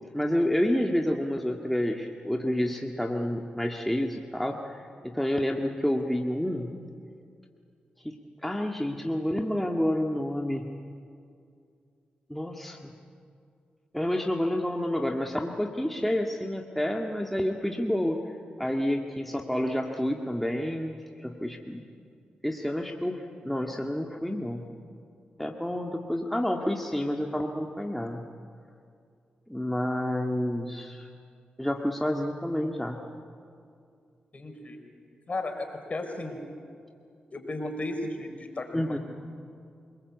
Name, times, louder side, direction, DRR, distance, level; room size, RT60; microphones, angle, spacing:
voice 1, 0.1-6.8 8.0-8.2 8.4-10.7 12.3-12.9 13.9-18.2 18.6-21.8 22.4-24.7 25.4-28.3 29.5-31.1 31.6-33.1 38.7-39.0, left 1 dB, 5° left, 2 dB, 1.9 m, -29 dB
voice 2, 34.3-34.8 35.3-36.4 37.3-39.0, left 2 dB, 45° left, 4 dB, 5.0 m, -34 dB
27.0 x 20.5 x 8.4 m, 2.4 s
supercardioid pair, 50°, 3 cm